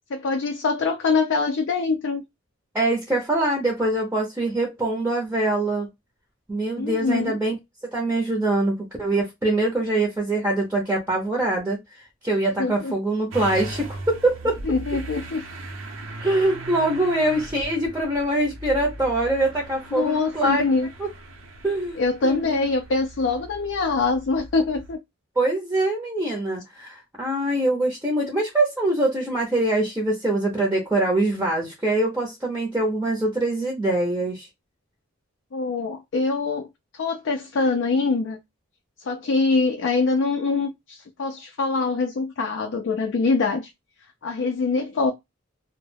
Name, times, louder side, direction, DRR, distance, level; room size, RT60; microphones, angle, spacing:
voice 1, 0.1-2.2 6.8-7.4 12.6-12.9 14.7-15.4 19.9-20.9 22.0-25.0 35.5-36.7 37.0-38.4 39.0-43.7 44.2-45.1, left 4 dB, 65° left, 0.4 m, -24 dB
voice 2, 2.7-5.9 6.5-7.6 7.9-14.6 16.2-20.6 21.0-21.1 21.6-22.7 25.4-34.5, right 2 dB, 10° right, 0.5 m, -24 dB
Motor vehicle (road) / Engine starting, 13.3-24.9, right 2 dB, 85° right, 0.6 m, -39 dB
2.2 x 2.1 x 3.2 m
head